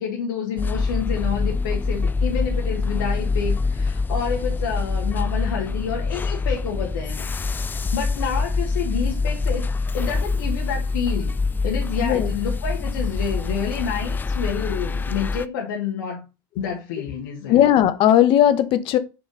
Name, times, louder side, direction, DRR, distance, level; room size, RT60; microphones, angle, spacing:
voice 1, 0.0-7.6 7.9-9.7 9.9-11.4 11.6-16.3 16.6-17.7, left 6 dB, 80° left, 1.5 m, -29 dB
sound 1, 0.6-15.5, left 4 dB, 20° left, 0.3 m, -25 dB
voice 2, 12.0-12.3 17.5-19.0, left 11 dB, 55° left, 0.8 m, -17 dB
5.7 x 4.0 x 5.4 m
supercardioid pair, 95°, 11 cm